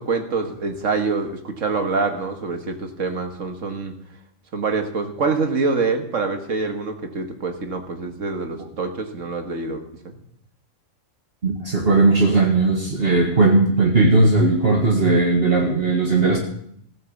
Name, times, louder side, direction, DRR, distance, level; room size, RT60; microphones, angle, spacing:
voice 1, 0.0-3.9 4.5-10.1, right 4 dB, 70° right, 5 dB, 2.0 m, -25 dB
voice 2, 11.4-16.4, right 3 dB, 45° right, 0 dB, 1.9 m, -17 dB
15.5 x 9.7 x 7.2 m, 0.69 s
omnidirectional pair, 1.4 m